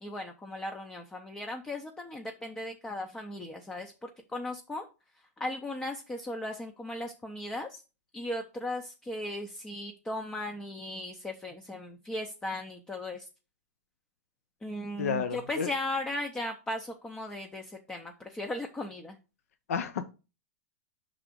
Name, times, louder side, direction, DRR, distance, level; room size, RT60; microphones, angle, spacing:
voice 1, 0.0-4.9 5.4-7.8 8.1-13.3 14.6-19.2, left 1 dB, 10° left, 0.6 m, -37 dB
voice 2, 15.0-15.7 19.7-20.0, left 6 dB, 80° left, 0.7 m, -31 dB
5.8 x 3.6 x 5.1 m
hypercardioid pair, 145°, 8 cm